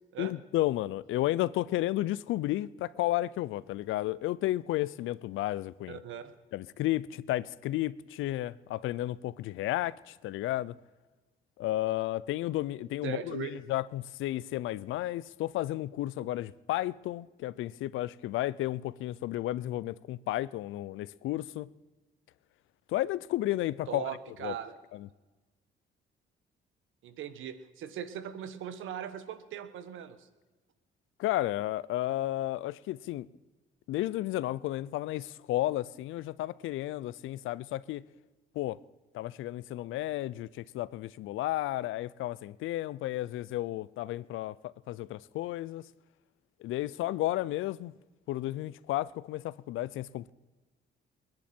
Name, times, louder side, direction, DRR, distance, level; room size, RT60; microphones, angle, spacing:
voice 1, 0.2-6.0 6.5-10.7 11.6-21.7 22.9-24.1 24.4-24.5 24.9-25.1 31.2-33.3 33.9-38.0 38.6-38.8 39.1-45.8 46.6-47.9 48.3-50.3, left 15 dB, 85° left, 0.5 m, -32 dB
voice 2, 5.9-6.3 13.0-13.5 23.9-24.8 27.0-30.3, right 9 dB, 80° right, 1.4 m, -39 dB
29.0 x 10.5 x 4.5 m
cardioid pair, 90°, 20 cm